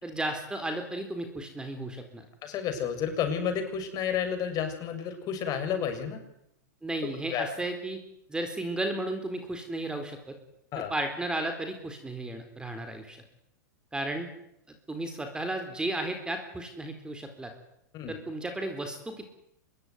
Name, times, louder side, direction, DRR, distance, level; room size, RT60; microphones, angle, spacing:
voice 1, 0.0-2.3 6.8-8.0 8.3-10.3 10.8-13.2 13.9-14.3 14.9-17.5 18.1-19.3, right 1 dB, 10° right, 6 dB, 4.2 m, -34 dB
voice 2, 2.4-6.2 7.3-7.5 10.7-10.9 17.9-18.2, left 8 dB, 40° left, 7 dB, 7.0 m, -31 dB
25.0 x 21.5 x 9.7 m, 0.79 s
hypercardioid pair, 120°, 10 cm